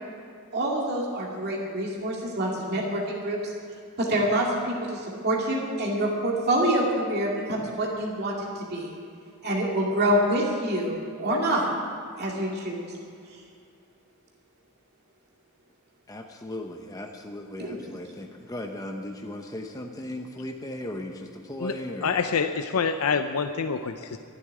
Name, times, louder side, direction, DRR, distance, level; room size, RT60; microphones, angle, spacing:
voice 1, 0.5-3.5 4.0-8.9 9.4-11.7 12.2-12.8 17.6-17.8, right 1 dB, 50° right, -3 dB, 2.3 m, -26 dB
voice 2, 16.1-22.2, left 1 dB, 15° left, 2 dB, 0.8 m, -37 dB
voice 3, 22.0-24.2, left 5 dB, 85° left, 8 dB, 0.6 m, -26 dB
13.5 x 8.4 x 9.9 m, 2.5 s
head